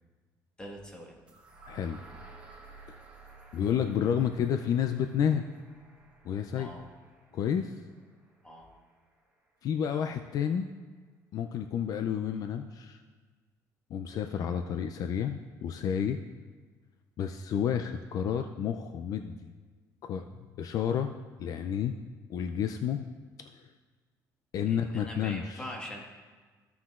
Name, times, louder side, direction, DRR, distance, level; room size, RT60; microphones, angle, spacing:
voice 1, 0.6-1.1 6.5-6.8 8.4-8.7 24.7-26.0, equal, 10° left, -1 dB, 1.5 m, -42 dB
sound 1, 1.3-9.2, right 3 dB, 15° right, 1.1 m, -54 dB
voice 2, 1.7-2.0 2.9-3.0 3.5-5.4 6.2-6.7 7.3-7.8 9.6-10.7 11.3-13.0 13.9-16.2 17.2-19.4 20.0-20.3 20.6-21.1 21.4-22.0 22.3-23.0 24.5-25.7, left 8 dB, 55° left, 7 dB, 0.4 m, -30 dB
15.0 x 5.8 x 2.4 m, 1.4 s
cardioid pair, 130°, 7 cm